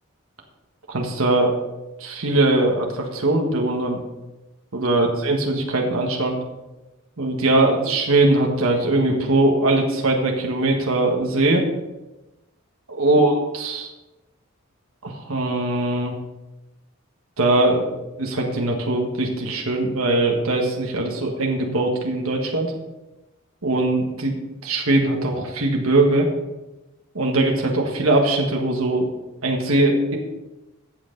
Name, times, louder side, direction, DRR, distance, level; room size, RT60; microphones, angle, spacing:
voice 1, 0.9-1.6 2.0-4.0 4.7-6.4 7.2-11.6 12.9-13.9 15.0-16.1 17.4-17.9 18.2-22.7 23.6-24.4 24.6-26.3 27.1-29.1 29.4-30.2, right 2 dB, 80° right, 1 dB, 1.6 m, -21 dB
14.0 x 7.9 x 3.9 m, 1.0 s
head